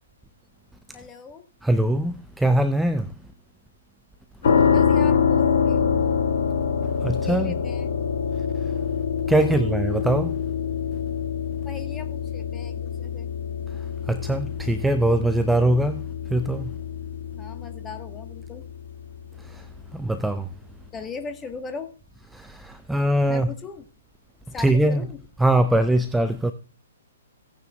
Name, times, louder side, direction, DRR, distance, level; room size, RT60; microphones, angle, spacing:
voice 1, 0.9-1.4 4.6-6.0 7.2-7.9 9.4-9.7 11.6-13.3 17.3-18.6 20.9-21.9 23.3-23.8 24.5-25.2, left 5 dB, 15° left, 1.3 m, -38 dB
voice 2, 1.6-3.1 6.8-7.6 8.4-8.7 9.3-10.4 13.7-16.7 19.4-20.5 22.3-23.5 24.6-25.0 25.4-26.5, right 1 dB, 5° right, 0.4 m, -22 dB
sound 1, 4.4-19.3, left 7 dB, 55° left, 1.5 m, -25 dB
16.5 x 9.3 x 2.3 m
figure-of-eight pair, 120°, 0 cm